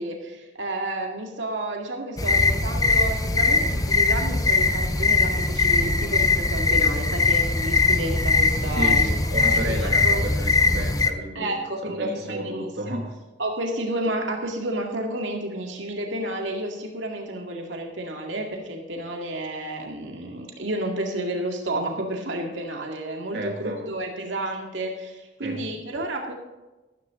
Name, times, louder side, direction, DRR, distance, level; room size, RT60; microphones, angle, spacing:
voice 1, 0.0-9.2 9.5-10.2 11.4-13.0 13.4-26.3, right 1 dB, 90° right, 1 dB, 2.1 m, -31 dB
sound 1, 2.2-11.1, left 3 dB, 20° left, 0.7 m, -21 dB
voice 2, 8.7-11.6 11.8-13.2 23.3-23.8 25.4-25.6, equal, 60° right, 0 dB, 2.0 m, -31 dB
13.5 x 13.5 x 3.8 m, 1.1 s
head